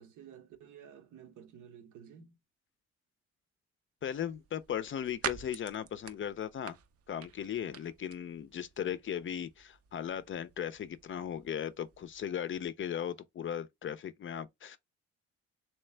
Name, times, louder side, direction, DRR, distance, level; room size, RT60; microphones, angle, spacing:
voice 1, 0.0-2.4, right 8 dB, 80° right, 1.0 m, -52 dB
voice 2, 4.0-6.8 7.1-14.8, left 9 dB, 40° left, 0.5 m, -37 dB
sound 1, 4.0-12.7, right 8 dB, 50° right, 0.6 m, -47 dB
3.2 x 3.1 x 3.2 m
cardioid pair, 90°, 30 cm